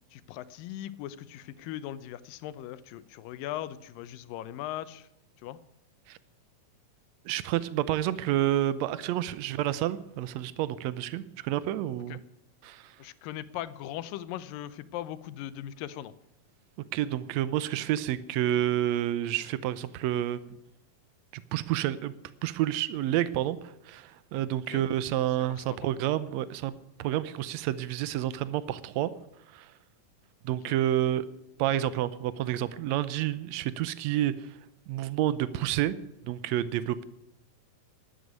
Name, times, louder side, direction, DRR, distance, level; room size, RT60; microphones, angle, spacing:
voice 1, 0.1-5.1 5.4-5.6 12.1-12.2 13.0-16.1 24.7-24.9 25.5-25.8 30.7-30.8, left 12 dB, 80° left, 16 dB, 2.4 m, -39 dB
voice 2, 7.2-12.2 12.6-12.9 16.9-20.5 21.3-22.1 22.4-26.7 27.0-29.1 29.5-29.7 30.4-31.2 31.6-34.3 34.9-35.9 36.2-37.0, right 12 dB, 85° right, 16 dB, 1.5 m, -29 dB
12.5 x 11.5 x 9.5 m, 0.82 s
omnidirectional pair, 4.0 m